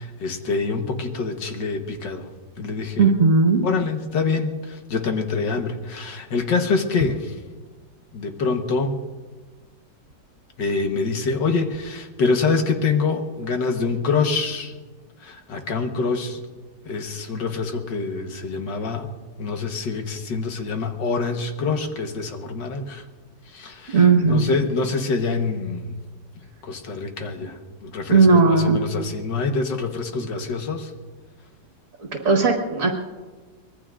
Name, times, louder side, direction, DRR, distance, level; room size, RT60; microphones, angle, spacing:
voice 1, 0.0-2.3 2.6-3.1 3.6-7.3 8.1-9.0 10.6-14.7 15.2-16.4 16.9-19.1 19.4-23.0 23.5-24.0 24.3-26.0 26.6-30.9, left 4 dB, 75° left, 5 dB, 1.9 m, -25 dB
voice 2, 3.0-3.6 23.9-24.5 28.1-28.8 32.1-32.9, right 4 dB, 50° right, 2 dB, 1.8 m, -16 dB
24.0 x 20.0 x 2.5 m, 1.4 s
omnidirectional pair, 2.0 m